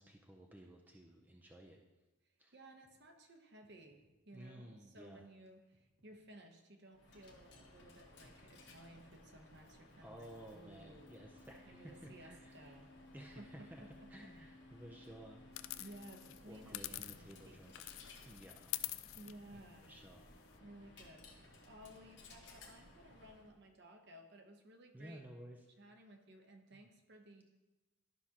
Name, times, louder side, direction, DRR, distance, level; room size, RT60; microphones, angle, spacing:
voice 1, 0.0-1.8 2.4-2.5 4.3-5.3 10.0-12.7 13.1-13.8 14.1-15.4 15.8-15.9 16.4-17.7 18.2-18.8 19.5-20.3 24.9-25.7 26.7-26.9, right 1 dB, 10° right, 0 dB, 0.5 m, -55 dB
voice 2, 2.5-11.1 11.6-12.9 13.4-13.9 15.8-17.6 19.1-19.9 20.6-25.2 25.8-27.4, right 1 dB, 50° right, 4 dB, 0.9 m, -57 dB
sound 1, 2.8-2.9 3.3-3.4 3.6-4.1 4.4-4.5 4.9-5.0 5.5-5.6 5.7-6.2 6.5-6.6 7.0-7.2 7.6-7.7 7.8-8.3 8.6-8.7 9.1-9.3 9.7-10.4 10.7-10.8 11.2-11.4 11.8-11.9 12.0-12.5 12.8-12.9 13.4-13.5 13.9-14.0 14.1-14.7 14.9-15.0 15.5-15.6 16.0-16.1 16.2-16.8 17.0-17.1 17.6-17.7 18.1-18.2 18.4-18.9 19.1-19.2, equal, 70° right, 1.6 m, -75 dB
Coin (dropping), 6.9-23.6, left 2 dB, 55° left, 1.3 m, -59 dB
sound 2, 15.5-17.5 17.7-20.6, left 17 dB, 70° left, 0.3 m, -46 dB
12.0 x 6.0 x 2.8 m, 1.1 s
head